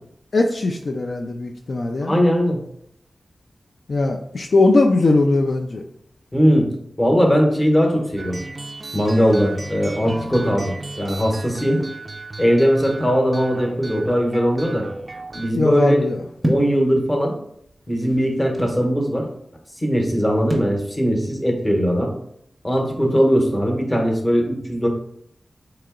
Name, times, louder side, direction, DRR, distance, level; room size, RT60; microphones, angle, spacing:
voice 1, 0.3-2.2 3.9-5.8 15.6-16.2, left 2 dB, 55° left, 2 dB, 0.3 m, -19 dB
voice 2, 2.0-2.6 6.3-6.7 7.0-8.4 8.9-11.8 12.4-14.9 15.3-16.0 16.4-17.3 17.9-19.3 19.8-22.1 22.6-24.9, equal, 15° left, 1 dB, 0.9 m, -19 dB
sound 1, 8.2-15.5, right 2 dB, 35° right, 0.3 m, -35 dB
sound 2, 16.4-16.8 17.7-18.9 20.5-20.8, equal, 10° right, 0.7 m, -25 dB
3.8 x 2.9 x 3.6 m, 0.70 s
wide cardioid pair, 120°, 0 cm